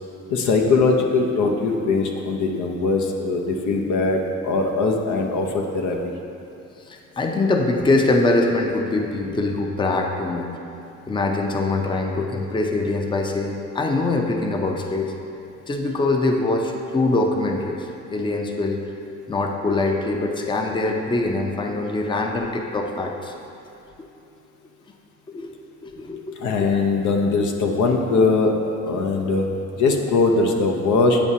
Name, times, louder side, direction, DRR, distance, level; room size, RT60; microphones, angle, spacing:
voice 1, 0.3-6.1 26.4-29.5 29.7-31.2, left 3 dB, 75° left, 2 dB, 0.7 m, -21 dB
voice 2, 6.9-10.6 11.1-15.1 15.7-18.8 19.3-23.3 23.7-24.1 25.3-25.5 25.8-26.8, left 2 dB, 15° left, 2 dB, 0.5 m, -23 dB
8.8 x 4.8 x 2.7 m, 2.7 s
cardioid pair, 90°, 30 cm